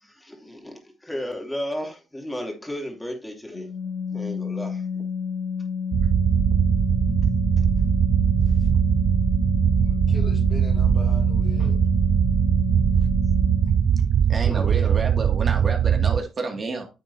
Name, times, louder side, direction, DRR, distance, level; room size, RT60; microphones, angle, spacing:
voice 1, 0.0-3.7 4.1-5.0 14.2-14.7, equal, 10° left, 2.9 m, -34 dB
Organ, 3.5-14.1, left 6 dB, 75° left, 2.1 m, -30 dB
sound 1, 5.9-16.2, right 8 dB, 60° right, 0.3 m, -20 dB
voice 2, 9.8-11.8, left 2 dB, 30° left, 2.3 m, -41 dB
voice 3, 14.3-16.9, right 3 dB, 40° right, 2.3 m, -30 dB
9.9 x 7.4 x 2.8 m
cardioid pair, 90°, 0 cm